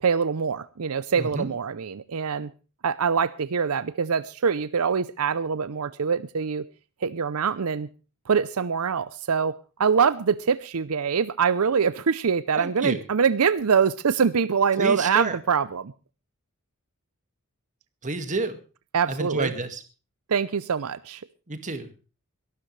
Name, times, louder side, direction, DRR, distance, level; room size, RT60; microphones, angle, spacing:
voice 1, 0.0-2.5 2.8-6.6 7.0-7.9 8.3-15.9 18.9-19.5 20.3-21.2, right 6 dB, 80° right, 16 dB, 0.6 m, -24 dB
voice 2, 1.2-1.5 12.5-13.0 14.7-15.4 18.0-18.6 19.1-19.8 21.5-22.0, right 2 dB, 35° right, 9 dB, 1.9 m, -30 dB
22.5 x 12.5 x 3.2 m, 0.33 s
head